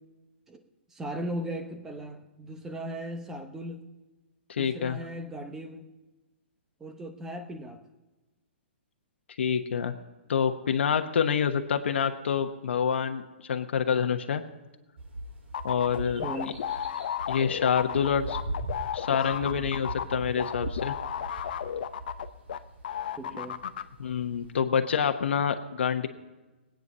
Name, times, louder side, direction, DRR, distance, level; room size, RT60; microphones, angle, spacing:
voice 1, 0.9-3.9 4.6-5.9 6.8-7.8 16.2-16.6 19.0-19.5 23.2-23.6, right 1 dB, 5° right, 6 dB, 0.8 m, -38 dB
voice 2, 4.5-5.0 9.4-9.9 10.3-14.4 15.6-16.3 17.3-18.4 18.9-20.9 24.0-26.1, left 7 dB, 75° left, 6 dB, 1.1 m, -27 dB
sound 1, 15.0-24.6, right 1 dB, 70° right, 4.5 m, -40 dB
sound 2, 15.5-22.6 22.8-23.8, left 9 dB, 55° left, 0.7 m, -33 dB
20.5 x 9.1 x 5.5 m, 1.1 s
hypercardioid pair, 170°, 6 cm